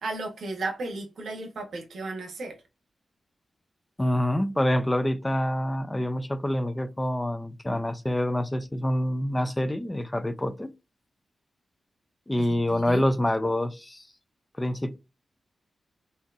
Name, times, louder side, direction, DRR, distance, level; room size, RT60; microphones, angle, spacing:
voice 1, 0.0-2.6 12.4-13.1, right 2 dB, 80° right, 0.9 m, -34 dB
voice 2, 4.0-10.7 12.3-14.0 14.6-15.0, left 1 dB, 10° left, 0.3 m, -26 dB
3.6 x 2.6 x 2.4 m
wide cardioid pair, 125°, 0 cm